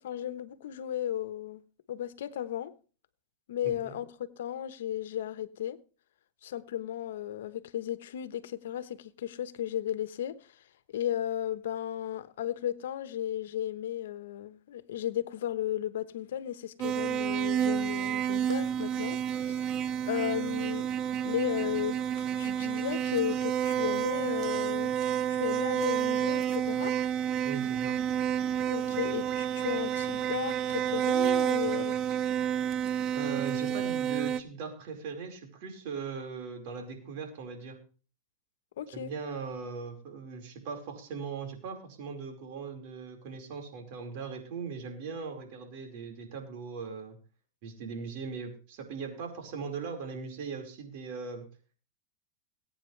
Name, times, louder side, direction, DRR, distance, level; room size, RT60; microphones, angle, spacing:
voice 1, 0.0-1.6 1.9-2.7 3.5-5.8 6.4-10.5 10.9-19.7 20.1-20.8 21.2-24.9 25.3-27.0 28.6-32.0 38.8-39.1, left 11 dB, 80° left, 1.1 m, -35 dB
voice 2, 3.6-4.0 27.4-28.0 33.1-37.8 38.9-47.2 47.6-51.4, right 5 dB, 60° right, 4.7 m, -39 dB
sound 1, 16.8-34.4, right 9 dB, 40° right, 0.9 m, -30 dB
21.5 x 8.9 x 3.3 m
supercardioid pair, 130°, 0 cm